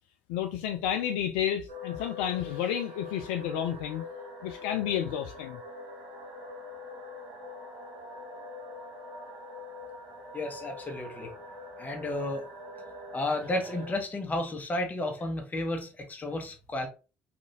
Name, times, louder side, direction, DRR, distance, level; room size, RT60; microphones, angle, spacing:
voice 1, 0.3-4.0 4.4-5.6, left 10 dB, 70° left, 0.3 m, -31 dB
sound 1, 1.7-14.0, left 3 dB, 70° right, 1.2 m, -44 dB
voice 2, 10.3-11.3 11.8-12.5 13.1-16.9, left 1 dB, 25° left, 1.1 m, -32 dB
3.3 x 2.7 x 2.8 m
hypercardioid pair, 55°, 6 cm